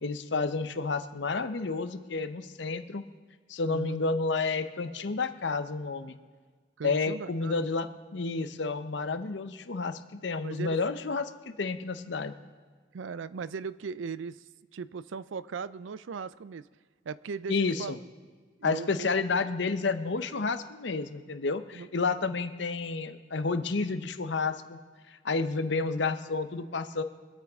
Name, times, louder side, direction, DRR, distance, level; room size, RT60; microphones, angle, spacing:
voice 1, 0.0-3.0 3.5-6.2 6.8-12.3 17.5-18.0 18.6-24.8 25.1-27.0, left 4 dB, 75° left, 11 dB, 0.7 m, -30 dB
voice 2, 3.7-4.0 6.8-7.7 10.4-10.8 12.9-14.4 14.7-16.6 17.0-17.9 18.6-19.1 21.7-21.9, right 5 dB, 90° right, 17 dB, 0.4 m, -38 dB
24.5 x 8.9 x 3.6 m, 1.5 s
head